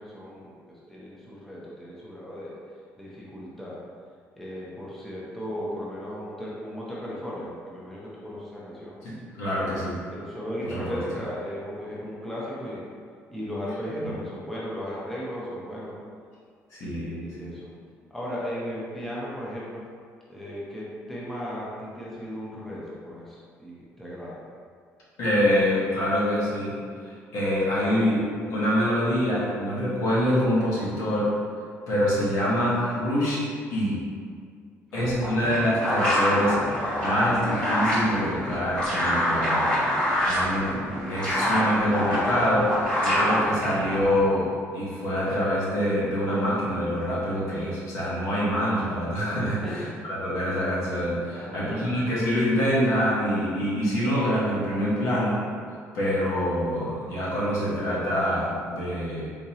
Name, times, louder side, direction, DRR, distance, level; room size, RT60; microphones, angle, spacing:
voice 1, 0.0-2.5 3.0-3.8 4.4-8.9 10.1-12.9 13.3-15.9 16.8-17.7 18.1-19.8 20.3-24.4 34.9-35.3 49.6-50.0 51.4-52.0, equal, 5° left, -7 dB, 0.6 m, -36 dB
voice 2, 9.0-10.0 10.6-11.0 14.0-14.1 16.7-17.5 25.2-26.8 27.0-31.3 31.9-33.4 33.7-34.0 34.9-36.6 37.0-39.7 40.2-40.8 41.1-55.4 55.9-59.3, equal, 85° left, -7 dB, 1.1 m, -25 dB
sound 1, 35.0-44.2, equal, 20° left, 1.4 m, -26 dB
3.7 x 2.9 x 2.8 m, 2.1 s
cardioid pair, 150°, 5 cm